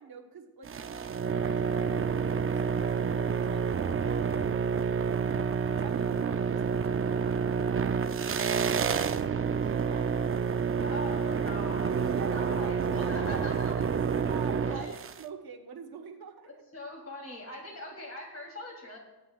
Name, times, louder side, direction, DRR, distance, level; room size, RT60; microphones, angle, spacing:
voice 1, 0.0-9.1 9.6-11.0 11.4-11.7 12.1-13.5 13.9-16.6, right 6 dB, 85° right, 4 dB, 1.2 m, -47 dB
sound 1, 0.6-15.2, right 6 dB, 40° right, 0.5 m, -29 dB
voice 2, 10.8-11.9 12.3-13.7 14.7-14.9 16.7-19.0, left 1 dB, 45° left, 0 dB, 3.1 m, -41 dB
21.0 x 8.0 x 2.4 m, 1.0 s
wide cardioid pair, 95°, 36 cm